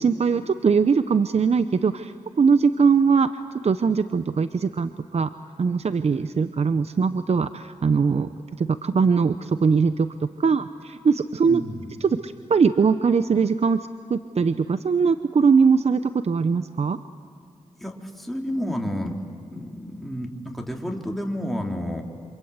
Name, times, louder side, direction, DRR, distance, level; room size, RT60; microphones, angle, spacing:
voice 1, 0.0-3.3 3.6-5.3 5.6-8.3 8.6-11.6 12.0-17.0, right 5 dB, 55° right, 11 dB, 0.8 m, -21 dB
voice 2, 11.4-11.9 17.8-19.2 19.5-22.0, equal, ahead, 1 dB, 4.1 m, -30 dB
27.5 x 25.5 x 8.2 m, 2.5 s
cardioid pair, 45°, 13 cm